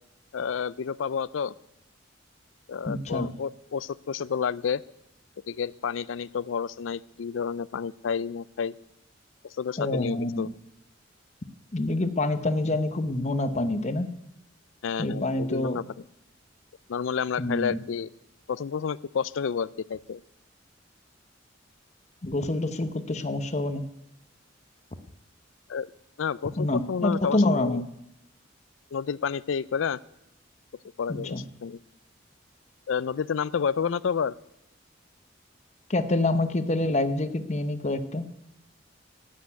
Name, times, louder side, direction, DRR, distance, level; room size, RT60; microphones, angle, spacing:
voice 1, 0.3-1.5 2.7-4.8 5.5-8.8 9.4-10.5 14.8-16.0 16.9-18.1 18.5-20.2 25.7-25.9 26.2-27.8 28.9-30.0 31.0-31.8 32.9-34.3, left 6 dB, 85° left, 20 dB, 0.4 m, -30 dB
voice 2, 2.9-3.3 9.8-10.5 11.7-14.1 15.0-15.8 17.4-17.8 22.2-23.8 26.6-27.8 31.1-31.4 35.9-38.3, left 2 dB, 35° left, 10 dB, 0.9 m, -27 dB
11.5 x 8.4 x 9.4 m, 0.85 s
head